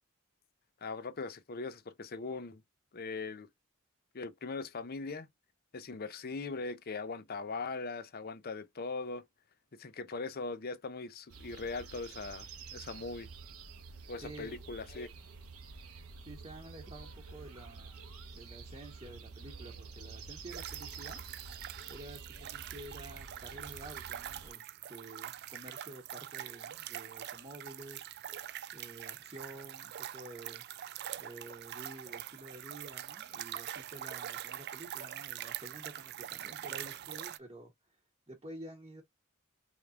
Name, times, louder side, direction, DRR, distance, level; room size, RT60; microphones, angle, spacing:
voice 1, 0.8-2.6 2.9-3.5 4.1-5.3 5.7-9.2 9.7-12.5 12.7-13.3 14.1-15.1, left 3 dB, 45° left, 0.6 m, -40 dB
sound 1, 11.3-24.5, right 4 dB, 90° right, 1.0 m, -49 dB
voice 2, 14.2-14.6 16.2-21.2 21.9-28.1 28.7-30.6 31.2-38.0 38.3-39.0, right 1 dB, 25° right, 1.0 m, -50 dB
sound 2, 20.5-37.4, right 11 dB, 50° right, 0.3 m, -44 dB
4.1 x 3.3 x 2.4 m
head